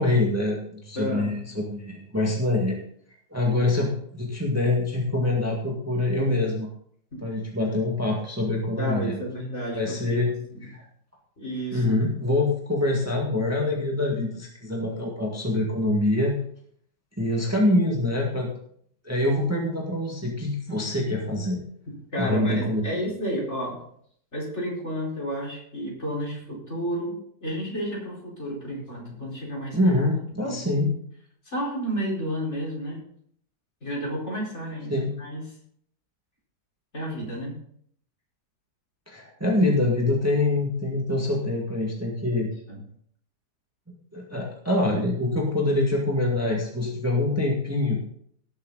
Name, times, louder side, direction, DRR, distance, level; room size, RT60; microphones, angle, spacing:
voice 1, 0.0-2.8 3.3-6.7 7.2-9.1 9.7-10.3 10.6-10.8 11.7-16.3 17.2-18.5 19.0-21.6 22.2-23.1 29.7-30.9 34.9-35.1 39.1-42.5 44.1-48.0, left 2 dB, 10° right, -2 dB, 1.9 m, -25 dB
voice 2, 0.9-1.5 3.6-3.7 7.1-7.2 8.8-10.2 10.5-10.7 11.4-11.8 22.1-23.8 24.3-27.2 27.4-29.8 30.4-30.6 31.4-33.0 33.8-35.4 36.9-37.5 42.3-42.8, equal, 45° left, -4 dB, 4.8 m, -31 dB
18.5 x 7.3 x 4.0 m, 0.64 s
omnidirectional pair, 1.7 m